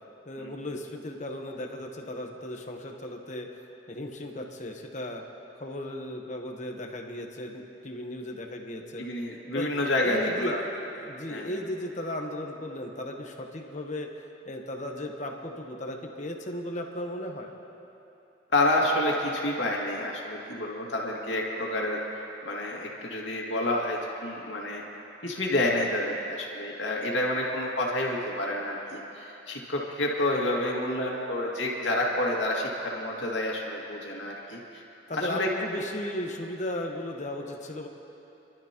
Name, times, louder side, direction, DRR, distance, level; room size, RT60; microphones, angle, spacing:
voice 1, 0.3-5.2 5.6-17.5 35.1-37.9, left 1 dB, 40° left, 2 dB, 1.0 m, -36 dB
voice 2, 9.0-10.6 11.3-11.5 18.5-22.0 22.5-24.8 25.2-34.8 35.1-35.5, left 1 dB, 75° left, -2 dB, 2.2 m, -29 dB
29.5 x 12.0 x 3.0 m, 2.9 s
head